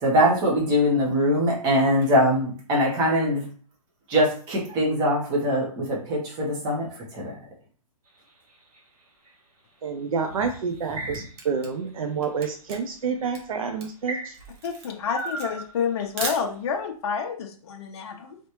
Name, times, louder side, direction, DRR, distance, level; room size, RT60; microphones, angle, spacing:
voice 1, 0.0-3.4 4.1-7.3, equal, 20° right, -3 dB, 1.2 m, -22 dB
sound 1, 8.1-9.3 10.3-11.6 12.0-12.5 13.2-13.4 14.0-16.2, right 2 dB, 85° right, 1.9 m, -37 dB
voice 2, 9.8-14.4, right 5 dB, 70° right, 5 dB, 0.6 m, -28 dB
Camera, 10.7-16.9, right 3 dB, 45° right, 1.3 m, -38 dB
voice 3, 14.6-18.4, left 6 dB, 45° left, 1 dB, 0.7 m, -29 dB
4.2 x 3.3 x 3.1 m, 0.43 s
hypercardioid pair, 160°, 19 cm